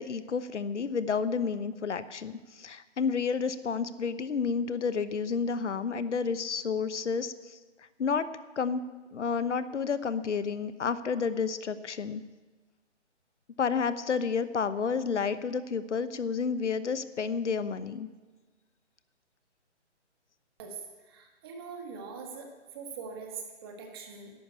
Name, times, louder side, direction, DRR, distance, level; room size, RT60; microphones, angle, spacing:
voice 1, 0.0-7.6 8.0-8.3 8.6-8.8 9.1-12.2 13.6-18.1, left 5 dB, 75° left, 13 dB, 1.0 m, -30 dB
voice 2, 20.6-24.3, right 5 dB, 20° right, 3 dB, 1.5 m, -43 dB
11.0 x 10.5 x 8.2 m, 1.3 s
hypercardioid pair, 160°, 36 cm